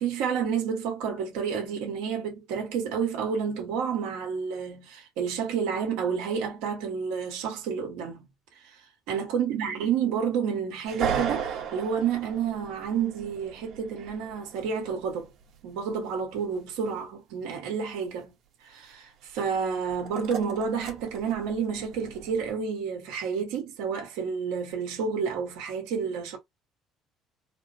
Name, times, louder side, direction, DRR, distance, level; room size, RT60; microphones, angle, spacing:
voice 1, 0.0-8.3 8.6-8.8 9.1-15.3 15.6-18.3 18.6-26.4, right 6 dB, 90° right, 1.4 m, -30 dB
sound 1, 10.9-15.5 19.6-22.5, right 7 dB, 65° right, 1.2 m, -36 dB
4.2 x 2.0 x 2.7 m
cardioid pair, 110°, 0 cm